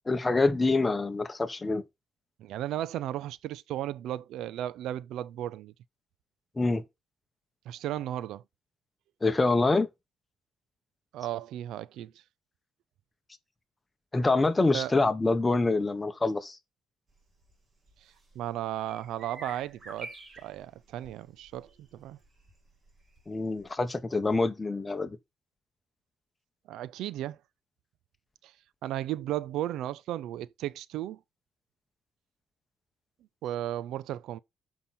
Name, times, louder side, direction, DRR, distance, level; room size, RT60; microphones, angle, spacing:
voice 1, 0.1-1.8 6.6-6.8 9.2-9.9 14.1-16.6 23.3-25.2, left 3 dB, 20° left, 1.3 m, -26 dB
voice 2, 2.4-5.7 7.7-8.4 11.1-12.1 14.7-14.9 18.4-22.2 26.7-27.4 28.4-28.5 28.8-31.2 33.4-34.4, right 13 dB, 85° right, 0.4 m, -35 dB
sound 1, 17.1-23.7, right 2 dB, 35° right, 3.0 m, -50 dB
6.9 x 5.7 x 4.4 m
cardioid pair, 90°, 0 cm